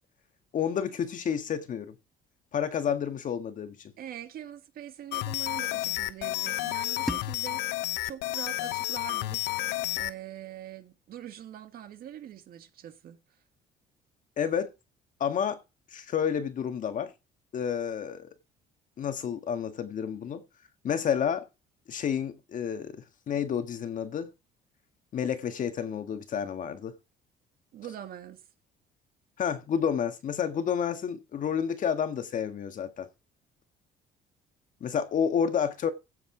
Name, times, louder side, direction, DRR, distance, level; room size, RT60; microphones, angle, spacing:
voice 1, 0.5-1.9 2.5-3.9 14.4-14.7 15.2-15.6 15.9-17.1 17.5-18.3 19.0-20.4 20.8-21.4 21.9-24.3 25.1-26.9 29.4-33.1 34.8-35.9, left 8 dB, 50° left, 1.6 m, -30 dB
voice 2, 4.0-9.5 10.0-13.2 27.7-28.4, right 10 dB, 60° right, 1.8 m, -43 dB
sound 1, 5.1-10.1, left 18 dB, 85° left, 0.6 m, -31 dB
sound 2, 7.1-10.0, equal, ahead, 1.6 m, -42 dB
16.0 x 7.0 x 3.9 m
cardioid pair, 110°, 17 cm